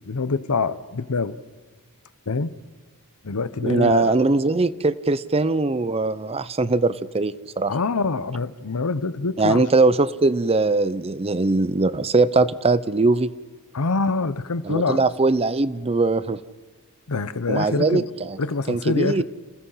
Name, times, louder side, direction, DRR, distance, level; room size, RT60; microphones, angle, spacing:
voice 1, 0.0-1.4 2.3-2.5 3.2-4.2 7.7-9.6 13.7-15.0 17.1-18.1 18.4-19.2, left 3 dB, 80° left, 14 dB, 0.8 m, -25 dB
voice 2, 3.6-7.7 9.4-13.3 14.6-16.4 17.5-18.4 18.7-19.2, right 3 dB, 25° right, 16 dB, 0.6 m, -21 dB
29.0 x 16.0 x 5.7 m, 1.3 s
head